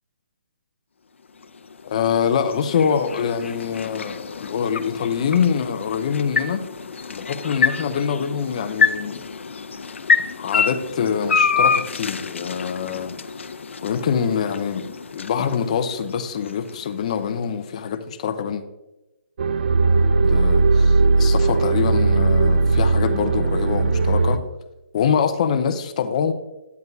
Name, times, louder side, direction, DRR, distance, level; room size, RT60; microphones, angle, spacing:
sound 1, 1.2-17.4, left 5 dB, 85° left, 0.7 m, -27 dB
voice 1, 1.8-6.7 7.1-9.2 10.4-13.2 13.8-18.6 20.2-24.4 24.9-26.3, left 7 dB, 35° left, 0.6 m, -24 dB
sound 2, 19.4-24.4, right 3 dB, 50° right, 0.5 m, -18 dB
9.3 x 9.0 x 2.7 m
hypercardioid pair, 170°, 7 cm